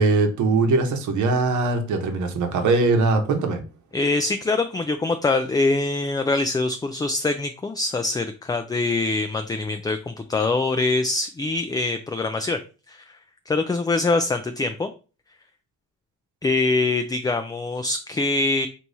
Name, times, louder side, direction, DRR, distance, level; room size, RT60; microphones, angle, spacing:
voice 1, 0.0-3.6, right 3 dB, 75° right, 5 dB, 1.1 m, -21 dB
voice 2, 3.9-12.6 12.9-13.2 13.5-14.9 16.4-18.7, left 3 dB, 15° left, 8 dB, 0.4 m, -24 dB
3.5 x 3.0 x 4.0 m, 0.35 s
cardioid pair, 90°, 30 cm